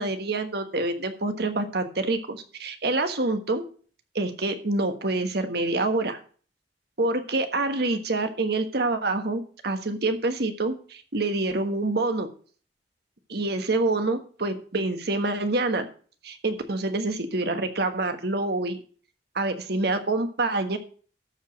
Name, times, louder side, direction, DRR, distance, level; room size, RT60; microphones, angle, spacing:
voice 1, 0.0-3.6 4.1-6.2 7.0-12.3 13.3-15.9 16.2-18.8 19.3-20.8, right 2 dB, 60° right, 7 dB, 1.4 m, -26 dB
13.0 x 5.1 x 5.8 m, 0.42 s
head